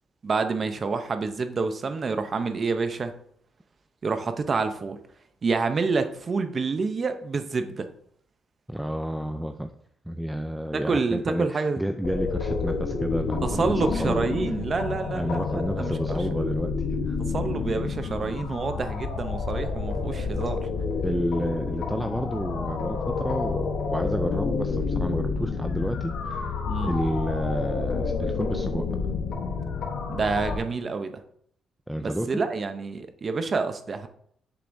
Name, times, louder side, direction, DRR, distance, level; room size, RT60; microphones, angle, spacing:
voice 1, 0.2-3.1 4.0-5.0 5.4-7.9 10.7-11.8 13.4-16.0 17.3-20.7 26.6-26.9 30.1-31.1 32.0-34.1, right 4 dB, 35° right, 8 dB, 0.7 m, -28 dB
voice 2, 8.7-9.7 10.1-14.3 15.1-17.2 21.0-28.9 31.9-32.4, equal, 5° right, 7 dB, 0.4 m, -30 dB
sound 1, 12.0-30.6, left 4 dB, 75° left, 1.1 m, -29 dB
7.6 x 7.0 x 2.6 m, 0.67 s
cardioid pair, 135°, 0 cm